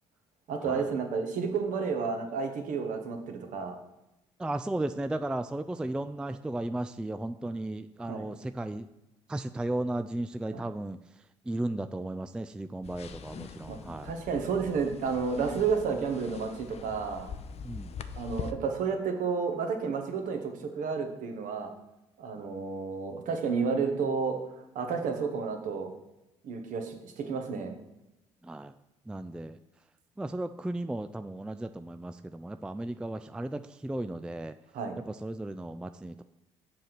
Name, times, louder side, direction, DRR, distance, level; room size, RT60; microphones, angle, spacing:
voice 1, 0.5-3.8 8.1-8.3 10.5-10.6 13.6-13.8 14.0-17.3 18.1-21.7 22.2-24.4 24.7-25.9 26.4-27.7 34.7-35.0, right 5 dB, 55° right, 4 dB, 1.3 m, -31 dB
voice 2, 4.4-8.9 9.3-14.1 17.6-18.0 22.3-22.4 28.4-28.7 29.1-29.6 30.2-34.5 35.1-36.2, right 1 dB, 5° right, 10 dB, 0.3 m, -35 dB
sound 1, 12.8-18.5, left 6 dB, 40° left, 0.6 m, -43 dB
7.5 x 5.1 x 5.8 m, 0.91 s
figure-of-eight pair, 50°, 16 cm